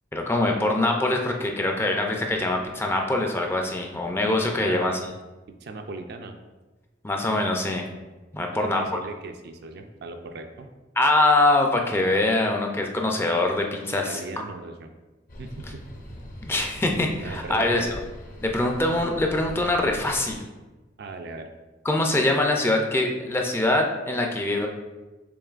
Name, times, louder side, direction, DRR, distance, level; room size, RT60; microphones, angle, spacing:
voice 1, 0.1-5.0 7.0-7.9 8.3-9.0 11.0-14.4 16.4-17.9 18.4-20.5 21.8-24.7, left 2 dB, 10° left, 2 dB, 0.4 m, -23 dB
voice 2, 4.5-4.9 5.6-6.4 8.5-10.7 13.9-14.9 15.4-15.8 17.2-18.0 21.0-21.5, right 3 dB, 60° right, 6 dB, 0.4 m, -38 dB
sound 1, 15.3-20.4, equal, 45° left, 0.7 m, -41 dB
6.9 x 3.0 x 2.4 m, 1.2 s
head